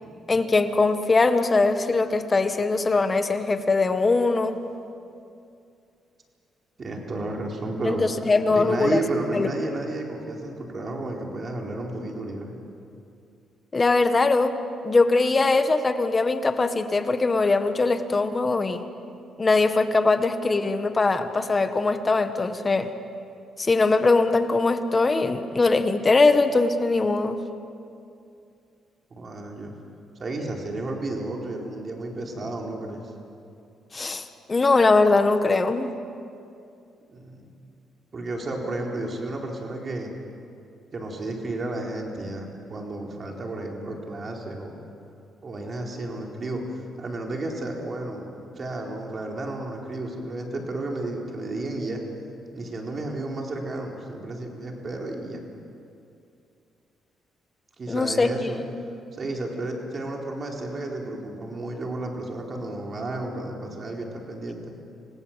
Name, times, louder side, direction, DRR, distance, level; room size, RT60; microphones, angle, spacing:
voice 1, 0.3-4.6 7.8-9.0 9.3-9.5 13.7-14.5 14.8-18.8 19.4-22.9 23.6-27.4 33.9-35.9 57.9-58.8, left 3 dB, 30° left, 9 dB, 1.5 m, -21 dB
voice 2, 6.8-12.6 29.1-29.7 30.2-33.1 37.1-37.5 38.1-40.1 40.9-44.7 45.4-46.6 47.0-52.0 52.5-55.4 57.8-58.6 59.1-64.7, right 2 dB, 40° right, 0 dB, 4.3 m, -32 dB
27.5 x 18.0 x 7.5 m, 2.5 s
cardioid pair, 85°, 0 cm